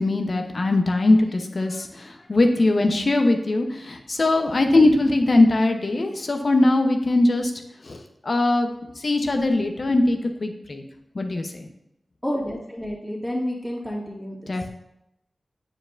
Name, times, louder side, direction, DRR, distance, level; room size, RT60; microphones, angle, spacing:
voice 1, 0.0-7.5 7.8-8.7 9.0-10.8 11.1-11.7 14.5-14.7, left 2 dB, 60° left, 4 dB, 0.9 m, -21 dB
voice 2, 12.2-14.5, equal, 10° left, -4 dB, 2.2 m, -30 dB
8.9 x 5.0 x 2.6 m, 0.84 s
cardioid pair, 40°, 0 cm